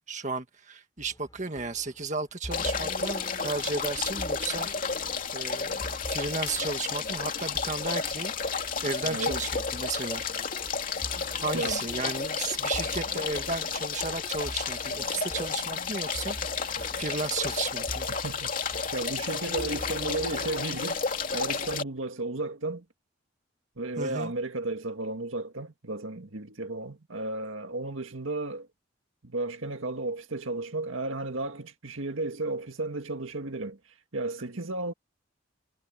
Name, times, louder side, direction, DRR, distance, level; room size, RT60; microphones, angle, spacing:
voice 1, 0.1-4.7 5.3-8.3 8.8-10.2 11.4-18.1 20.1-20.2 24.0-24.3, right 3 dB, 35° right, 1.8 m, -34 dB
sound 1, 1.0-20.8, equal, 20° left, 7.7 m, -46 dB
sound 2, 2.5-21.8, left 5 dB, 40° left, 2.9 m, -32 dB
voice 2, 9.0-9.4 11.5-11.8 18.2-18.5 18.9-22.9 23.8-28.7 29.2-33.8 34.1-34.9, right 2 dB, 75° right, 1.9 m, -33 dB
head